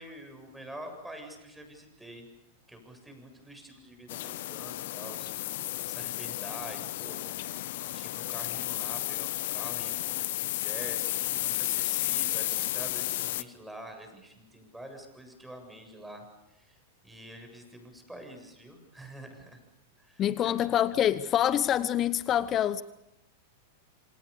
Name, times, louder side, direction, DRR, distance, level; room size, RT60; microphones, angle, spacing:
voice 1, 0.0-2.3 2.7-5.3 5.8-7.5 7.9-16.8 17.0-19.6 20.0-20.6, right 1 dB, 5° right, 7.7 m, -46 dB
sound 1, 4.1-13.4, left 16 dB, 60° left, 1.2 m, -33 dB
voice 2, 20.2-22.8, left 11 dB, 35° left, 1.0 m, -26 dB
28.0 x 26.5 x 7.0 m
hypercardioid pair, 100°, 0 cm